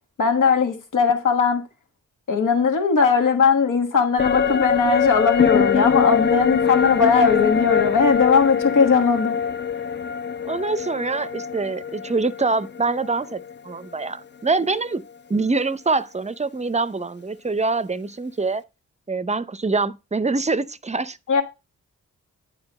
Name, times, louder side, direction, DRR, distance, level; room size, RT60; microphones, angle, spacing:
voice 1, 0.2-1.6 2.3-9.4 21.3-21.4, left 5 dB, 75° left, 1.4 m, -19 dB
sound 1, 4.2-13.7 14.0-14.1, left 6 dB, 35° left, 0.6 m, -23 dB
voice 2, 10.5-15.0 15.3-18.6 19.1-21.2, right 3 dB, 20° right, 0.6 m, -24 dB
8.8 x 4.8 x 4.1 m
cardioid pair, 45°, 32 cm